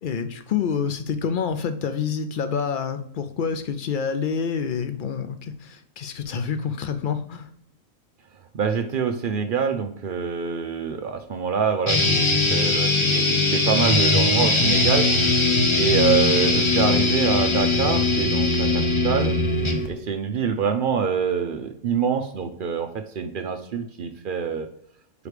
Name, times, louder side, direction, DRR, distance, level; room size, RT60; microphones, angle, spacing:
voice 1, 0.0-7.5, left 6 dB, 70° left, 9 dB, 0.4 m, -27 dB
voice 2, 8.5-15.4 15.7-19.3 19.9-24.7, right 6 dB, 60° right, 7 dB, 0.5 m, -26 dB
sound 1, 11.9-19.9, left 3 dB, 30° left, 0.6 m, -20 dB
4.9 x 4.8 x 4.9 m, 0.68 s
omnidirectional pair, 1.5 m